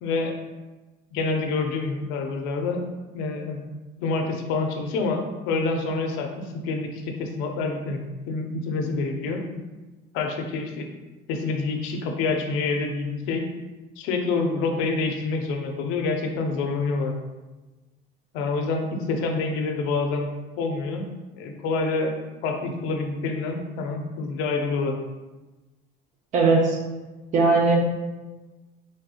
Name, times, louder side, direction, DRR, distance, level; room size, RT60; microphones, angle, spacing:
voice 1, 0.0-0.4 1.1-2.8 3.1-3.6 4.0-8.0 8.3-9.4 10.1-10.9 11.3-13.5 14.0-17.1 18.3-20.3 20.6-21.1 21.3-22.1 22.4-25.0, left 3 dB, 80° left, 3 dB, 0.5 m, -27 dB
voice 2, 26.3-26.8 27.3-27.8, right 3 dB, 35° right, 0 dB, 0.5 m, -18 dB
3.3 x 2.7 x 2.4 m, 1.2 s
cardioid pair, 165°, 21 cm